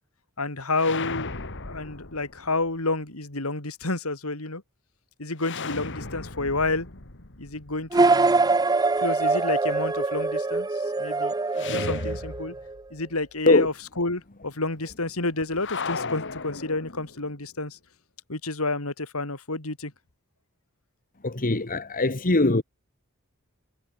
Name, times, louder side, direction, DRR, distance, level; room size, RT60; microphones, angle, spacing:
voice 1, 0.4-1.3 1.6-4.6 5.2-6.9 7.4-8.6 9.0-12.5 12.9-17.8 18.3-19.9, left 2 dB, 75° left, 3.9 m, -30 dB
sound 1, 0.7-2.7 5.4-8.4 11.5-13.0 13.2-13.3 15.6-17.4, left 4 dB, 60° left, 2.7 m, -36 dB
sound 2, 7.9-12.7, right 3 dB, 20° right, 0.7 m, -23 dB
voice 2, 21.2-22.6, left 2 dB, 40° left, 1.6 m, -21 dB
head